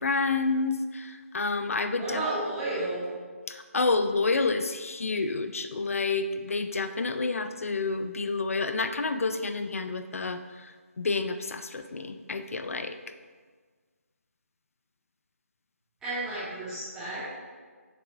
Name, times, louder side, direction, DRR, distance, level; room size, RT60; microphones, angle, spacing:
voice 1, 0.0-2.2 3.5-10.4 11.0-13.0, left 3 dB, 65° left, 10 dB, 0.5 m, -29 dB
voice 2, 1.9-3.0 16.0-17.3, right 2 dB, 10° right, -11 dB, 1.8 m, -32 dB
6.7 x 5.9 x 3.7 m, 1.5 s
figure-of-eight pair, 155°, 8 cm